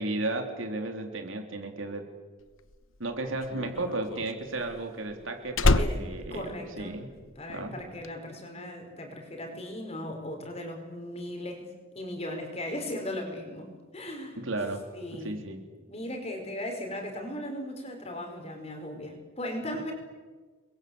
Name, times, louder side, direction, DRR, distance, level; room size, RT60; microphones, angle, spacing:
voice 1, 0.0-2.0 3.0-7.1 7.5-7.8 14.4-14.8 15.1-15.6, right 2 dB, 80° right, 4 dB, 3.8 m, -34 dB
Slam, 2.6-7.4 7.6-8.1, left 2 dB, 85° left, 1.1 m, -28 dB
voice 2, 6.3-7.0 7.4-11.7 12.0-14.4 14.9-15.4 15.9-19.9, left 1 dB, 30° left, 3 dB, 5.3 m, -37 dB
29.0 x 22.5 x 8.1 m, 1.4 s
head